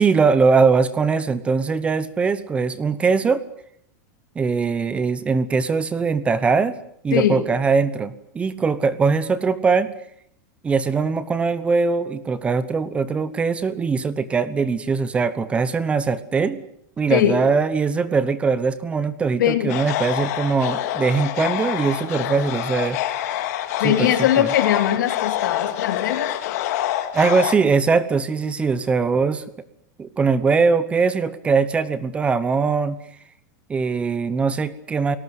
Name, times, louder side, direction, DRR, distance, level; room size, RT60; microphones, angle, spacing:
voice 1, 0.0-3.4 4.3-6.7 7.0-9.9 10.6-16.6 17.0-23.0 23.8-24.1 24.4-24.5 27.1-29.4 30.0-33.0 33.7-35.2, right 5 dB, 10° right, 15 dB, 0.9 m, -21 dB
voice 2, 7.1-7.5 17.1-17.4 19.4-19.8 23.8-26.4, left 11 dB, 80° left, 7 dB, 3.3 m, -21 dB
sound 1, 19.7-27.5, left 13 dB, 55° left, 2.7 m, -26 dB
29.5 x 18.5 x 8.0 m, 0.70 s
supercardioid pair, 170°, 10 cm